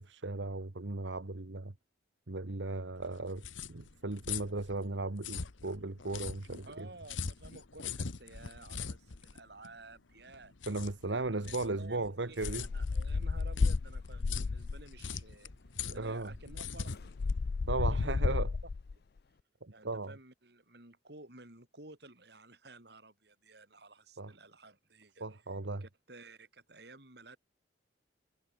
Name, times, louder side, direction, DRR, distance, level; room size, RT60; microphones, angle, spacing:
voice 1, 0.0-1.7 2.3-6.9 10.7-12.7 15.9-16.3 17.7-18.5 19.6-20.1 24.2-24.3 25.2-25.8, right 2 dB, 75° right, 1.3 m, -36 dB
sound 1, 3.0-18.2, left 6 dB, 85° left, 1.1 m, -43 dB
voice 2, 6.6-10.5 11.1-15.5 15.9-17.1 18.0-18.2 19.7-25.2 25.8-27.4, right 2 dB, 60° right, 4.4 m, -54 dB
sound 2, 12.4-15.0 15.9-16.0 16.3-18.9, left 4 dB, 55° left, 0.4 m, -32 dB
head